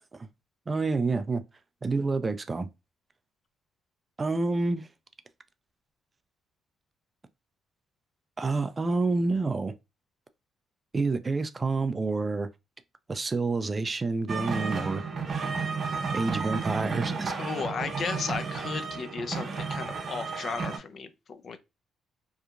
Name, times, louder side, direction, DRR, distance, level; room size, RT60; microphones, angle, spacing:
voice 1, 0.7-1.4 1.8-2.7 4.2-4.9 8.4-9.7 10.9-12.5 13.1-15.0 16.1-17.3, right 3 dB, 30° right, 0.3 m, -28 dB
sound 1, 14.3-20.8, right 5 dB, 45° right, 0.7 m, -32 dB
voice 2, 17.4-21.6, left 5 dB, 50° left, 0.4 m, -35 dB
2.8 x 2.3 x 2.4 m
cardioid pair, 90°, 0 cm